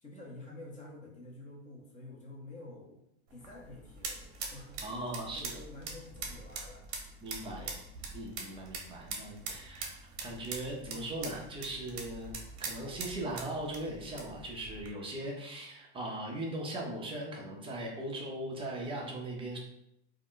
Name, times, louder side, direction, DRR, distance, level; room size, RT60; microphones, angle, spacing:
voice 1, 0.0-3.0 3.3-6.9 7.6-7.8, left 2 dB, 20° left, -3 dB, 0.7 m, -49 dB
sound 1, 3.3-14.9, right 4 dB, 55° right, 0.8 m, -43 dB
voice 2, 4.8-5.6 7.2-7.7 8.1-9.9 10.2-12.3 12.6-19.6, right 1 dB, 15° right, -1 dB, 0.4 m, -39 dB
2.4 x 2.1 x 3.6 m, 0.79 s
supercardioid pair, 135°, 35 cm